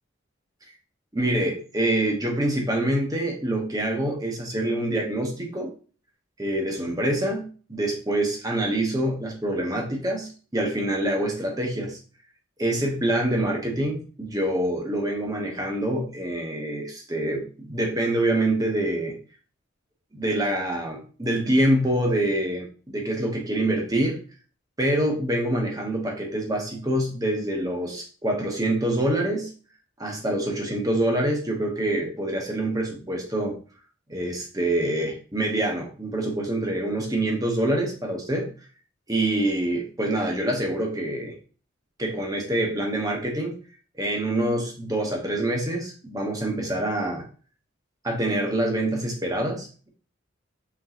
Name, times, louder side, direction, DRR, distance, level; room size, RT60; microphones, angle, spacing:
voice 1, 1.1-5.7 6.4-12.0 12.6-19.2 20.1-24.2 24.8-29.5 30.0-33.6 34.1-38.5 39.1-41.3 42.0-43.5 44.0-47.2 48.0-49.9, right 1 dB, 20° right, 1 dB, 0.8 m, -26 dB
4.0 x 3.6 x 2.8 m, 0.39 s
head